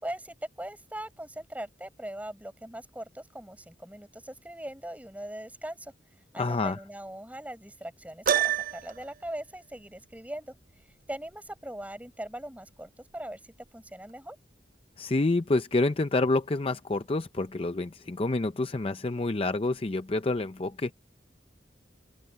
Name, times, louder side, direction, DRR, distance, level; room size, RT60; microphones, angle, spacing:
voice 1, 0.0-5.9 6.3-10.5 11.1-13.4 13.7-14.4, right 1 dB, 10° right, 6.5 m, -40 dB
voice 2, 6.4-6.8 15.0-20.9, left 2 dB, 30° left, 0.5 m, -28 dB
Piano, 8.3-9.1, right 9 dB, 50° right, 0.5 m, -26 dB
head